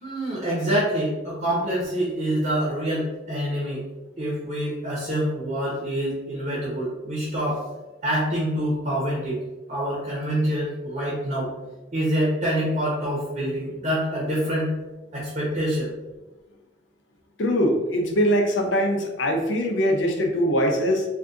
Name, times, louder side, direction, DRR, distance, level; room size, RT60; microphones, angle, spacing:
voice 1, 0.0-3.8 4.2-7.6 8.0-9.4 9.7-11.5 11.9-14.7 15.1-15.9, right 1 dB, 45° right, -5 dB, 0.8 m, -26 dB
voice 2, 17.4-21.1, equal, 75° left, 3 dB, 0.6 m, -22 dB
2.7 x 2.4 x 3.6 m, 1.1 s
head